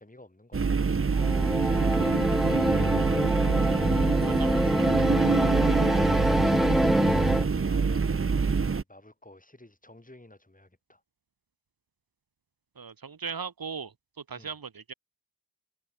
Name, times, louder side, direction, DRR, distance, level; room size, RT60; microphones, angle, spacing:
voice 1, 0.0-2.6 3.6-11.0 14.4-14.5, left 1 dB, 25° left, 6.3 m, -52 dB
sound 1, 0.5-8.8, right 5 dB, 40° right, 0.8 m, -26 dB
sound 2, 1.1-7.5, equal, ahead, 0.7 m, -25 dB
voice 2, 4.2-4.8 12.8-14.9, right 6 dB, 80° right, 1.8 m, -39 dB
wide cardioid pair, 50°, 35 cm